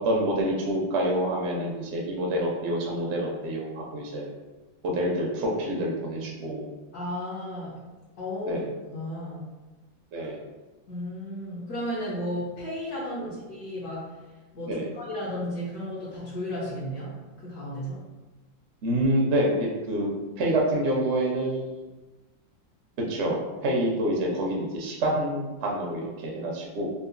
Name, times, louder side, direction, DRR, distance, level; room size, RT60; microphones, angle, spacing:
voice 1, 0.0-4.3 4.8-6.7 8.5-8.6 10.1-10.4 14.7-14.9 18.8-20.1 20.4-21.7 23.1-23.4 23.6-26.8, right 1 dB, 65° right, -2 dB, 0.7 m, -27 dB
voice 2, 6.9-7.8 8.2-8.6 8.9-9.4 10.9-14.2 14.5-18.0, left 1 dB, 60° left, -8 dB, 1.2 m, -34 dB
3.8 x 2.5 x 2.5 m, 1.2 s
omnidirectional pair, 2.1 m